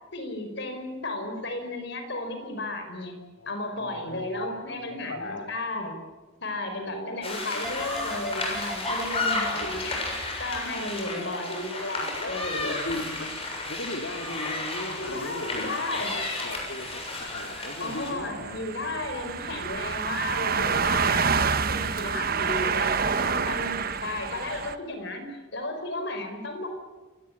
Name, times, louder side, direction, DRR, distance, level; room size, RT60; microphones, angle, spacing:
voice 1, 0.1-3.2 3.5-6.0 6.4-10.0 10.4-13.2 15.0-16.1 17.8-26.7, left 2 dB, 60° left, 7 dB, 5.2 m, -34 dB
voice 2, 3.4-4.5 4.9-5.5 6.8-7.6 9.1-9.8 12.2-12.3 12.6-13.3 13.6-18.6 19.5-19.8, left 1 dB, 75° left, 2 dB, 2.7 m, -39 dB
skating rink outdoor kids teenagers medium perspective, 7.2-18.1, left 2 dB, 30° left, 7.3 m, -33 dB
sound 1, 7.6-11.4 11.7-12.6 12.9-13.1, left 1 dB, ahead, 5.9 m, -38 dB
sound 2, 12.7-12.8 14.3-14.4 15.1-15.2 15.5-15.7 16.0-24.8, right 5 dB, 50° right, 1.1 m, -28 dB
29.0 x 18.0 x 9.9 m, 1.2 s
head